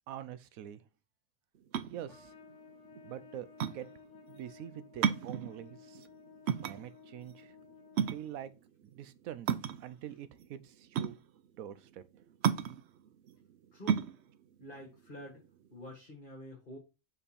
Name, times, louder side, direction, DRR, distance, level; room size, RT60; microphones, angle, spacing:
voice 1, 0.1-0.8 1.9-2.3 3.0-3.5 3.7-3.9 4.3-6.1 6.6-7.5 8.1-8.5 8.8-9.5 9.8-11.2 11.6-12.0, right 11 dB, 85° right, 1.1 m, -45 dB
sound 1, 1.6-15.9, right 8 dB, 65° right, 0.7 m, -35 dB
Trumpet, 2.1-8.6, left 6 dB, 60° left, 1.3 m, -56 dB
voice 2, 13.7-14.1 14.6-15.4 15.7-16.8, left 1 dB, 40° left, 1.8 m, -48 dB
5.5 x 4.4 x 4.2 m
omnidirectional pair, 1.4 m